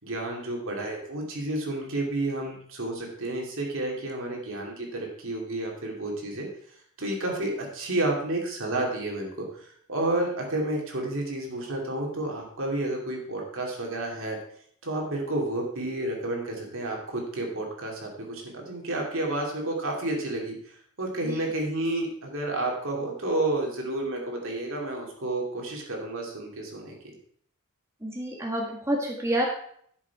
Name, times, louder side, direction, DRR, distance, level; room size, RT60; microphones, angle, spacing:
voice 1, 0.0-6.5 7.0-14.4 14.8-27.0, right 2 dB, 60° right, 0 dB, 2.8 m, -31 dB
voice 2, 28.0-29.5, right 1 dB, 15° right, -1 dB, 1.6 m, -28 dB
11.0 x 7.3 x 4.7 m, 0.63 s
head